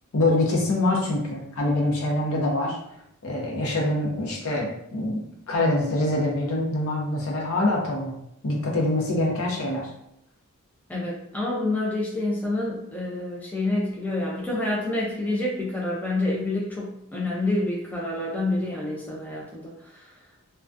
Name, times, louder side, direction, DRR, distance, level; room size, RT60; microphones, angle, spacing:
voice 1, 0.1-2.8 3.2-5.2 5.5-9.9, left 2 dB, 70° left, -2 dB, 0.7 m, -25 dB
voice 2, 10.9-19.7, left 2 dB, 10° left, -5 dB, 0.4 m, -28 dB
2.2 x 2.2 x 2.5 m, 0.77 s
head